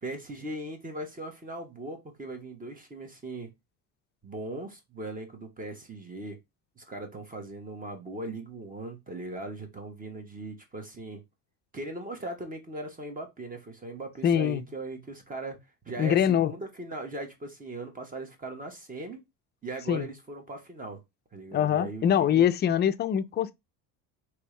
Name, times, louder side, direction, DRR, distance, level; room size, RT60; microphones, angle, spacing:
voice 1, 0.0-3.5 4.2-6.4 6.8-11.2 11.7-15.6 15.8-19.2 19.6-21.0 21.3-22.5, right 2 dB, 20° right, 1.2 m, -39 dB
voice 2, 14.2-14.6 16.0-16.5 19.9-20.1 21.5-23.5, left 9 dB, 30° left, 0.4 m, -24 dB
3.4 x 3.0 x 3.2 m
supercardioid pair, 110°, 38 cm